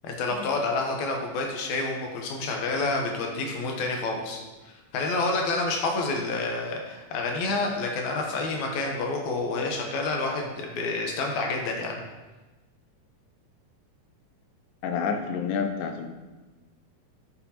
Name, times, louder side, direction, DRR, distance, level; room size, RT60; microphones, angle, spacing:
voice 1, 0.0-4.4 4.9-12.0, left 3 dB, 75° left, 1 dB, 2.2 m, -28 dB
voice 2, 14.8-16.1, left 6 dB, 90° left, 5 dB, 2.3 m, -28 dB
11.0 x 4.3 x 2.9 m, 1.2 s
omnidirectional pair, 3.7 m